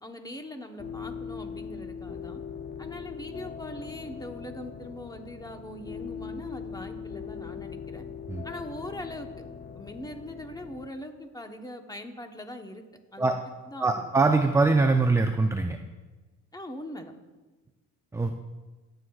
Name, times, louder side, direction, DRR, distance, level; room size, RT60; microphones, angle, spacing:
voice 1, 0.0-2.4 2.8-8.0 8.4-9.3 9.7-12.8 13.1-13.4 13.7-14.1 16.5-17.1, left 1 dB, 10° left, 5 dB, 1.0 m, -41 dB
sound 1, 0.8-10.9, left 6 dB, 35° left, 0.7 m, -40 dB
voice 2, 13.8-15.8 18.1-18.3, right 3 dB, 10° right, 5 dB, 0.5 m, -23 dB
18.5 x 7.8 x 2.4 m, 1.2 s
cardioid pair, 90°, 30 cm